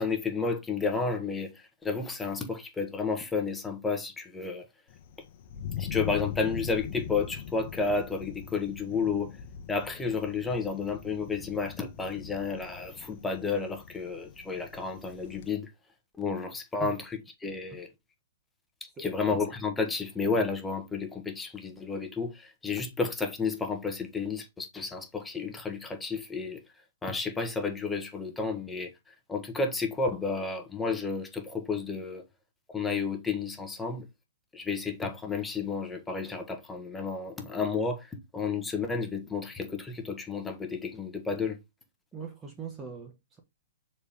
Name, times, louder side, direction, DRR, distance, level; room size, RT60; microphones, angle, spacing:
voice 1, 0.0-1.5 1.8-4.7 5.8-9.3 9.7-15.7 16.2-17.9 18.8-26.6 27.0-32.2 32.7-34.0 34.5-41.6, left 4 dB, 10° left, 1.3 m, -31 dB
Thunder, 4.9-15.5, left 8 dB, 45° left, 1.0 m, -41 dB
voice 2, 42.1-43.4, right 5 dB, 15° right, 1.1 m, -41 dB
6.8 x 4.3 x 3.5 m
hypercardioid pair, 150°, 0 cm